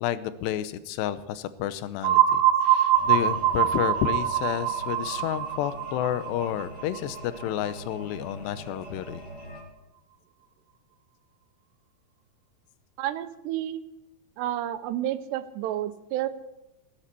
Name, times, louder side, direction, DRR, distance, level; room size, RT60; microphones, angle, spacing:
voice 1, 0.0-9.2, left 12 dB, 85° left, 14 dB, 3.0 m, -30 dB
sound 1, 2.0-7.7, right 11 dB, 65° right, 2.5 m, -24 dB
sound 2, 2.9-9.6, equal, 20° left, 3.9 m, -43 dB
voice 2, 13.0-13.8 14.4-16.3, right 12 dB, 85° right, 11 dB, 3.0 m, -30 dB
18.5 x 8.9 x 8.2 m, 0.91 s
omnidirectional pair, 4.8 m